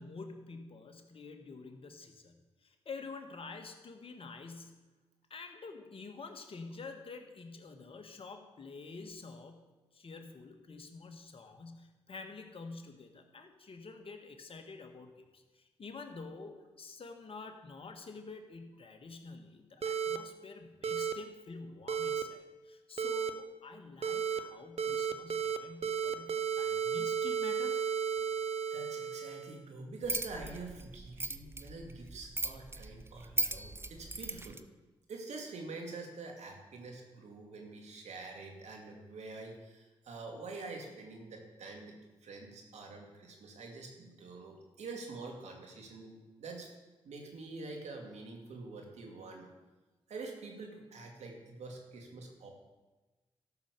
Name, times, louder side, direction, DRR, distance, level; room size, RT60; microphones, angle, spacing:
voice 1, 0.0-4.8 5.3-9.7 9.9-27.9 28.2-28.3, left 4 dB, 50° left, 5 dB, 1.7 m, -48 dB
sound 1, 19.8-20.2 20.8-21.1 21.9-22.2 23.0-23.3 24.0-24.4 24.8-25.6 25.8-29.6, right 7 dB, 60° right, 0.9 m, -33 dB
voice 2, 28.7-34.6 35.1-46.7 47.0-49.5 50.1-52.5, right 3 dB, 75° right, 2 dB, 2.3 m, -46 dB
sound 2, 30.0-34.6, right 2 dB, 20° right, 0.7 m, -38 dB
13.0 x 5.9 x 6.9 m, 1.2 s
supercardioid pair, 45°, 12 cm